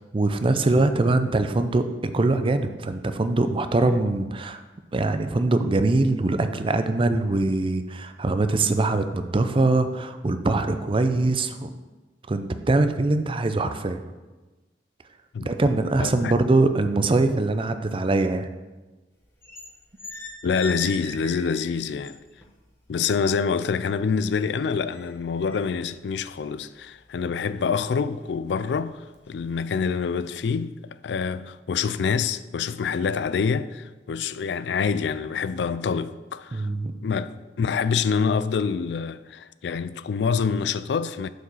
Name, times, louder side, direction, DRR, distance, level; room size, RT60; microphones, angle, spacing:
voice 1, 0.1-4.6 4.9-11.7 12.3-14.0 15.4-18.5 36.5-36.9, right 2 dB, 30° right, 0.5 m, -23 dB
voice 2, 16.0-16.3 20.4-22.2 22.9-29.0 29.3-30.7 31.0-36.7 37.0-41.3, left 6 dB, 70° left, 0.4 m, -26 dB
sound 1, 19.2-19.7 20.0-22.5 22.9-23.8 24.2-27.3 27.7-27.9 28.4-28.7 29.1-29.4, left 2 dB, 15° left, 1.3 m, -40 dB
6.8 x 4.8 x 6.2 m
head